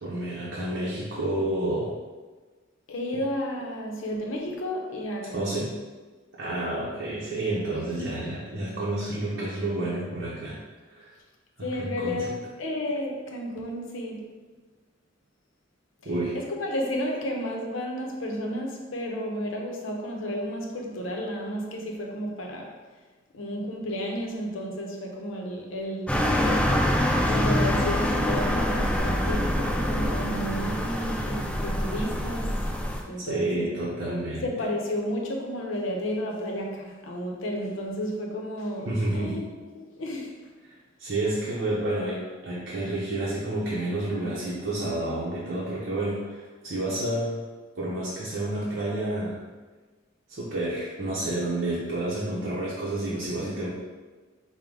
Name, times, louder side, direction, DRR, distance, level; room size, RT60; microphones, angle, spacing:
voice 1, 0.0-2.0 5.3-5.7 6.3-10.6 10.9-11.1 11.6-12.3 16.0-16.4 33.3-34.5 38.9-39.4 41.0-47.4 47.8-49.4 50.3-53.7, right 1 dB, 55° right, 0.7 m, -29 dB
voice 2, 2.9-5.7 8.0-8.2 11.6-14.4 16.0-22.8 23.3-26.9 27.3-32.7 33.1-33.7 34.4-40.5, equal, 75° left, 0.7 m, -32 dB
sound 1, 26.1-33.0, equal, 5° left, 0.3 m, -25 dB
4.6 x 2.2 x 3.7 m
head